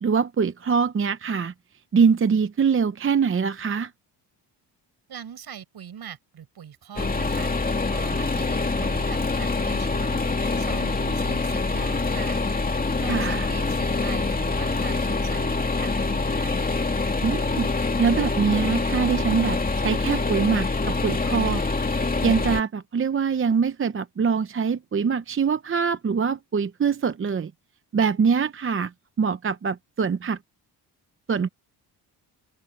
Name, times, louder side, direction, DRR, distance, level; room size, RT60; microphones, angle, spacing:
voice 1, 0.0-1.5 1.9-3.9 13.1-13.5 17.2-17.7 18.0-21.6 22.2-27.5 27.9-28.9 29.2-30.4 31.3-31.5, right 6 dB, 30° right, 0.8 m, -23 dB
voice 2, 5.1-12.4 13.0-16.6, right 9 dB, 60° right, 5.1 m, -42 dB
sound 1, 7.0-22.6, left 3 dB, 20° left, 2.5 m, -25 dB
open air
cardioid pair, 115°, 42 cm